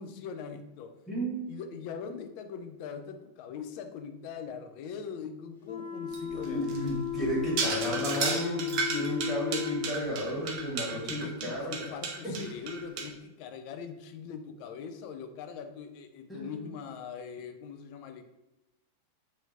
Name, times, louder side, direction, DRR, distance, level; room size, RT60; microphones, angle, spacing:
voice 1, 0.0-1.0 1.5-6.7 10.9-18.2, left 6 dB, 45° left, 8 dB, 0.3 m, -41 dB
voice 2, 1.1-1.5 6.3-11.9 12.2-12.3 16.3-16.6, equal, 10° left, -6 dB, 1.3 m, -33 dB
sound 1, 5.6-9.9, left 12 dB, 90° left, 0.7 m, -35 dB
sound 2, 6.1-13.0, right 4 dB, 45° right, 0.5 m, -34 dB
2.7 x 2.6 x 2.5 m, 0.92 s
figure-of-eight pair, 90°, 0 cm